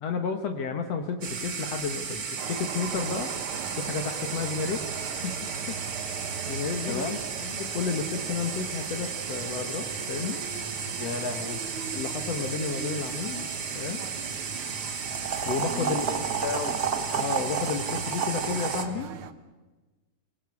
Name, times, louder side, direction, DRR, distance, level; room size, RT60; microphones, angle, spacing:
voice 1, 0.0-3.3 3.8-4.9 5.2-5.4 5.7-5.8 6.5-7.0 7.4-10.4 11.9-14.0 15.5-16.1 17.1-19.1, left 5 dB, 65° left, 5 dB, 2.3 m, -32 dB
sound 1, 1.2-18.8, right 6 dB, 40° right, 1.4 m, -33 dB
sound 2, 2.4-19.3, right 7 dB, 60° right, 1.5 m, -40 dB
voice 2, 6.9-7.2 11.0-11.6 15.6-16.8, left 5 dB, 35° left, 6 dB, 2.1 m, -34 dB
26.5 x 19.0 x 8.3 m, 1.2 s
omnidirectional pair, 3.4 m